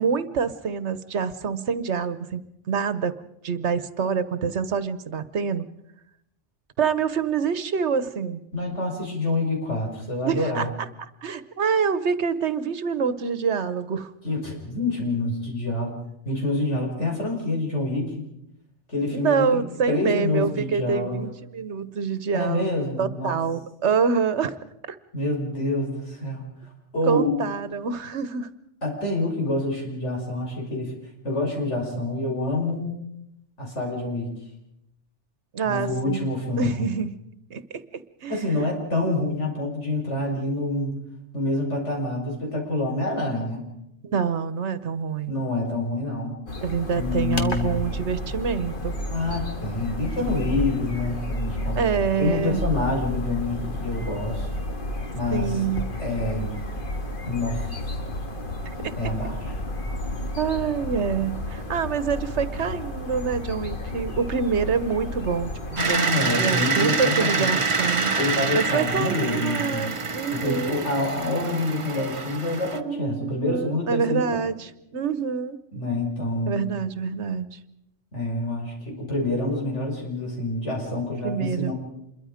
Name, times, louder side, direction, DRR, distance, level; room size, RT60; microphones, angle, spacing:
voice 1, 0.0-2.4 2.7-3.1 3.4-5.7 6.8-8.4 10.2-10.9 11.2-14.1 15.9-16.0 19.0-24.5 24.9-25.0 27.1-28.5 35.5-36.3 36.6-37.2 37.5-37.6 38.2-38.4 44.0-45.4 46.6-48.9 51.8-52.6 55.3-55.9 58.8-58.9 60.4-68.2 68.5-70.8 72.7-75.6 76.5-77.6 81.2-81.7, right 6 dB, 75° right, 14 dB, 1.3 m, -26 dB
voice 2, 8.5-10.7 14.2-15.9 16.2-18.1 18.9-21.2 22.3-23.3 25.1-26.4 26.9-27.4 28.8-30.9 31.2-33.0 33.6-34.3 35.6-36.8 38.3-40.9 41.3-43.7 45.3-46.4 46.9-47.8 49.1-51.8 52.2-54.5 55.1-55.5 56.0-56.5 57.3-58.1 59.0-59.5 65.7-67.6 68.2-69.9 70.3-74.4 75.7-76.7 78.1-81.7, left 2 dB, 85° left, 0 dB, 5.8 m, -27 dB
sound 1, 46.5-65.8, left 1 dB, 50° left, 1.9 m, -31 dB
sound 2, 65.8-72.8, right 4 dB, 30° right, 0.9 m, -26 dB
27.0 x 22.5 x 5.1 m, 0.82 s
omnidirectional pair, 1.2 m